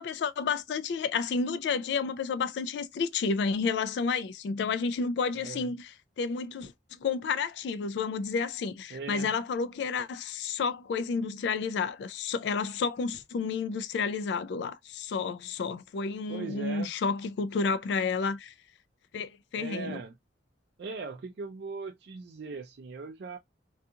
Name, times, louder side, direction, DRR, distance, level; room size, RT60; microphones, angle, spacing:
voice 1, 0.0-6.7 7.0-18.5 19.1-20.0, left 5 dB, 65° left, 0.3 m, -31 dB
voice 2, 5.3-5.7 8.9-9.3 16.3-16.9 19.6-20.1 20.8-23.4, right 4 dB, 60° right, 0.4 m, -39 dB
2.7 x 2.4 x 2.4 m
head